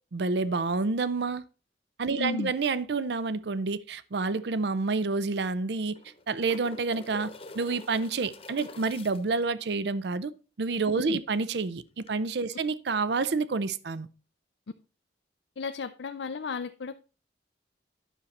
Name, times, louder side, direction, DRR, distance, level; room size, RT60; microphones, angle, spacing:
voice 1, 0.1-1.4 2.0-5.9 6.3-7.3 7.6-10.3 10.6-14.1, right 4 dB, 60° right, 0.5 m, -28 dB
voice 2, 2.2-2.5 15.6-17.0, left 4 dB, 75° left, 0.5 m, -34 dB
sound 1, 4.2-4.3 4.6-4.7 5.7-9.5 12.0-12.1, left 2 dB, 30° left, 1.0 m, -46 dB
10.0 x 6.5 x 4.2 m
head